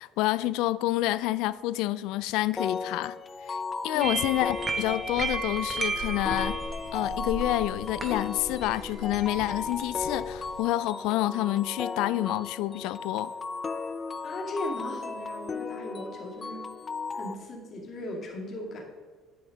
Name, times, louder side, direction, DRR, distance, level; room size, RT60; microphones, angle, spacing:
voice 1, 0.0-3.2 3.5-3.6 3.8-6.6 6.9-13.3, left 16 dB, 90° left, 0.3 m, -28 dB
sound 1, 2.6-17.3, left 4 dB, 25° left, 0.5 m, -36 dB
voice 2, 3.9-4.3 14.2-16.6 17.1-18.8, left 1 dB, 40° left, 2.3 m, -37 dB
sound 2, 4.0-10.6, right 3 dB, 20° right, 1.1 m, -35 dB
10.0 x 9.3 x 3.9 m
cardioid pair, 150°, 0 cm